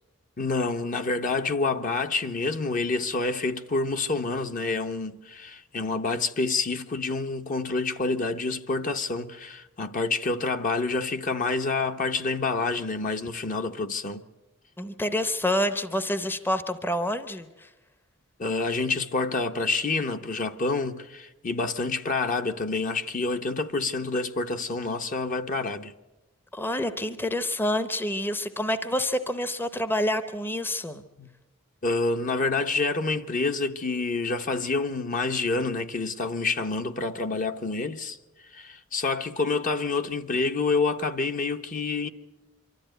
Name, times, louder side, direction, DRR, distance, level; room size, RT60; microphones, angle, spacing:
voice 1, 0.4-14.2 18.4-25.9 31.2-31.3 31.8-38.2 38.5-42.1, left 3 dB, 40° left, 0.8 m, -28 dB
voice 2, 14.8-17.7 26.5-31.0, left 1 dB, 10° left, 0.7 m, -28 dB
24.5 x 13.0 x 9.1 m
head